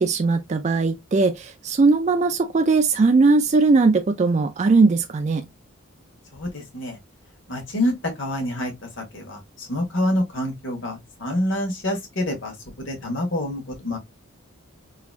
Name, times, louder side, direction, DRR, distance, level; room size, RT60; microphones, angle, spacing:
voice 1, 0.0-5.4, right 3 dB, 30° right, 0.3 m, -19 dB
voice 2, 6.3-7.0 7.5-14.0, left 1 dB, 60° left, 1.6 m, -27 dB
3.9 x 2.9 x 2.4 m
head